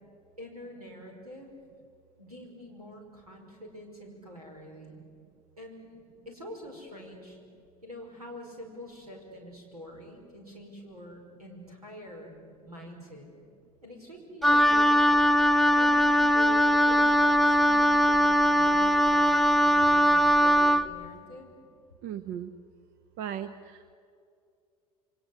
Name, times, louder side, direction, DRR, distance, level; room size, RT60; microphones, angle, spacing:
voice 1, 0.4-1.5 2.2-5.0 5.6-7.4 7.8-12.3 12.6-13.3 13.8-15.0 15.7-21.5, equal, 80° right, 1 dB, 5.2 m, -45 dB
Wind instrument woodwind instrument, 14.4-20.9, equal, ahead, 0.7 m, -21 dB
voice 2, 22.0-22.5 23.2-23.9, right 9 dB, 50° right, 13 dB, 0.9 m, -37 dB
28.0 x 24.0 x 7.9 m, 2.5 s
figure-of-eight pair, 70°, 19 cm